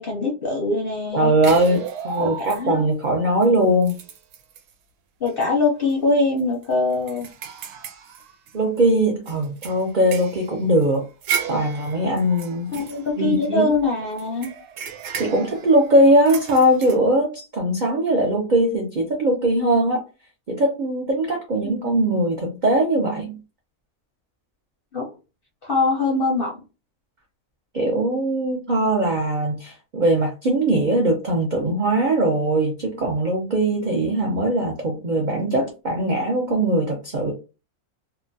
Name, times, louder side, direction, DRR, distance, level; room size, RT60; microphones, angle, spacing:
voice 1, 0.0-1.3 2.2-2.8 5.2-7.3 12.7-14.5 21.8-21.9 24.9-25.1 25.6-26.5, left 3 dB, 55° left, 0.6 m, -23 dB
voice 2, 1.1-4.0 8.5-11.0 11.5-12.7 13.2-13.7 15.2-20.0 20.5-23.4 27.7-37.3, right 1 dB, 65° right, 0.4 m, -20 dB
sound 1, 1.4-2.9 3.4-3.5 3.8-4.7 5.3-5.5 5.8-5.9 6.4-8.8 9.3-13.7 14.2-17.0, right 7 dB, 85° right, 1.1 m, -34 dB
2.8 x 2.2 x 2.6 m
omnidirectional pair, 1.6 m